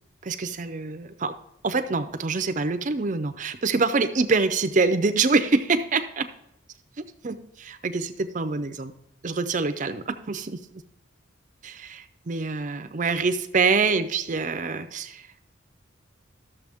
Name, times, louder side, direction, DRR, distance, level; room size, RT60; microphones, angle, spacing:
voice 1, 0.2-1.3 1.6-6.2 7.0-8.9 9.2-10.6 11.6-15.2, right 4 dB, 40° right, 9 dB, 0.5 m, -25 dB
12.0 x 7.0 x 3.5 m, 0.80 s
head